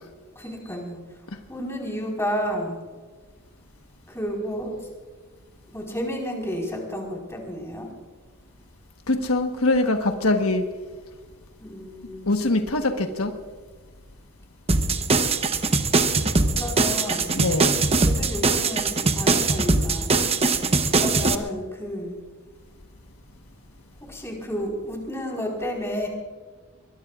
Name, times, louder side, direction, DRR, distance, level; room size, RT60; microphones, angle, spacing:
voice 1, 0.3-1.0 1.5-2.8 4.1-4.8 5.7-7.9 11.6-12.6 16.5-17.4 18.0-20.2 20.9-22.2 24.1-26.1, equal, 15° left, 0 dB, 4.6 m, -31 dB
voice 2, 9.1-10.6 12.3-13.3 17.3-17.9, left 2 dB, 80° left, 4 dB, 1.3 m, -23 dB
sound 1, 14.7-21.3, right 3 dB, 30° right, 0.9 m, -21 dB
23.0 x 21.5 x 2.5 m, 1.4 s
head